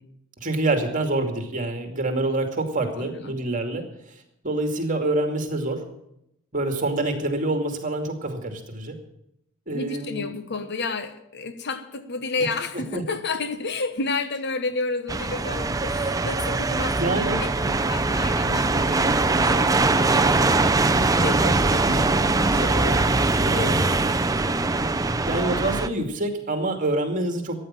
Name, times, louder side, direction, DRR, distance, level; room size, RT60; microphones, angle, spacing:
voice 1, 0.4-3.9 4.4-5.8 6.5-9.0 9.7-10.3 12.9-13.0 16.9-17.4 19.5-20.2 23.4-23.8 25.0-27.6, right 2 dB, 40° right, 2.5 m, -26 dB
voice 2, 2.9-3.4 9.7-23.9, left 3 dB, 55° left, 1.2 m, -32 dB
sound 1, 15.1-25.9, right 3 dB, 15° right, 0.6 m, -22 dB
14.0 x 9.8 x 7.5 m
head